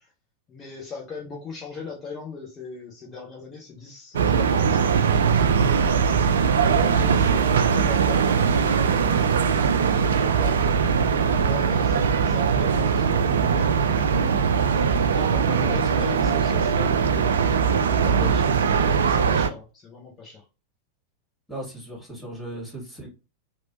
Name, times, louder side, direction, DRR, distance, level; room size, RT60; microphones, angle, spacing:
voice 1, 0.5-5.4 6.1-10.6 11.2-17.6 17.8-20.4, left 5 dB, 25° left, 0.9 m, -39 dB
sound 1, 4.1-19.5, right 6 dB, 65° right, 0.3 m, -21 dB
voice 2, 15.3-15.9 21.5-23.1, right 2 dB, 5° left, 1.9 m, -36 dB
3.1 x 2.6 x 2.7 m
figure-of-eight pair, 90°, 0 cm